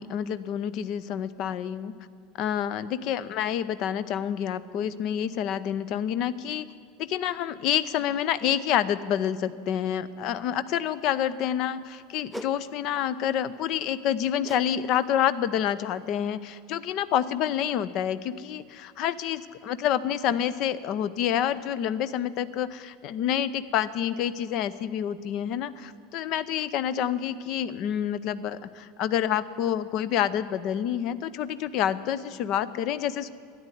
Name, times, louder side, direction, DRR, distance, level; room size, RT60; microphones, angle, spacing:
voice 1, 0.0-1.9 2.4-6.7 7.0-33.3, left 10 dB, 50° left, 15 dB, 0.6 m, -28 dB
sound 1, 12.3-12.6 14.4-14.7 15.0-15.3 15.8-15.9, equal, 5° left, 0.6 m, -40 dB
12.5 x 10.0 x 9.5 m, 2.1 s
figure-of-eight pair, 75°, 0 cm